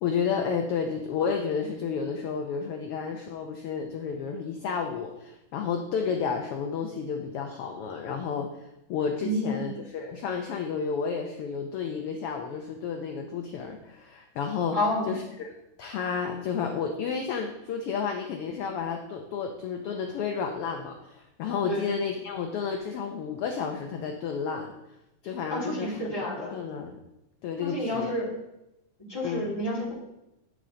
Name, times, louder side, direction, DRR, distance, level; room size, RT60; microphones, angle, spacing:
voice 1, 0.0-14.8 15.1-15.5 15.8-24.7 25.2-27.0 27.4-28.1 29.2-29.5, left 6 dB, 75° left, 3 dB, 1.3 m, -31 dB
voice 2, 9.2-9.6 14.7-15.1 21.6-21.9 25.5-26.5 27.6-28.3 29.1-29.9, left 1 dB, 10° left, -5 dB, 1.9 m, -29 dB
10.5 x 6.5 x 3.8 m, 0.90 s
omnidirectional pair, 3.4 m